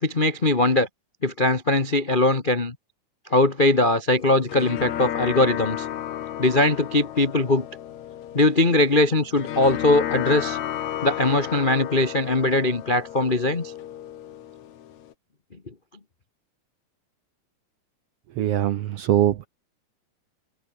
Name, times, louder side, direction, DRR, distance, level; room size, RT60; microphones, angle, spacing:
voice 1, 0.0-0.9 1.2-2.7 3.3-5.9 6.4-7.6 8.3-10.6 11.0-13.7, left 2 dB, 50° left, 0.6 m, -21 dB
Tanpura Mournful Strumming, 4.2-15.1, left 11 dB, 65° left, 2.6 m, -33 dB
voice 2, 18.4-19.5, right 12 dB, 65° right, 1.5 m, -22 dB
omnidirectional pair, 3.7 m